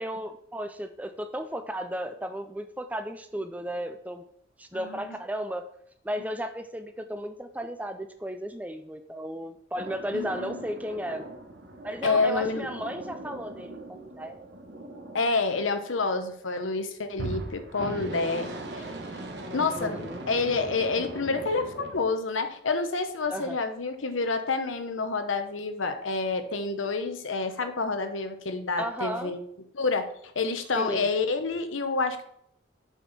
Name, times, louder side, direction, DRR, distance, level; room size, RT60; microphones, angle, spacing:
voice 1, 0.0-4.2 4.6-5.7 6.0-11.3 11.8-14.3 19.8-20.2 23.3-23.6 28.8-29.3 30.8-31.1, equal, 10° right, 8 dB, 0.4 m, -34 dB
voice 2, 4.7-5.2 10.1-10.6 12.0-12.7 15.1-18.9 19.5-29.4 29.7-30.1 30.3-32.2, left 3 dB, 85° left, 8 dB, 0.9 m, -28 dB
sound 1, 9.8-16.1 17.1-22.0, right 2 dB, 60° right, 1.1 m, -39 dB
7.3 x 5.3 x 4.1 m, 0.70 s
head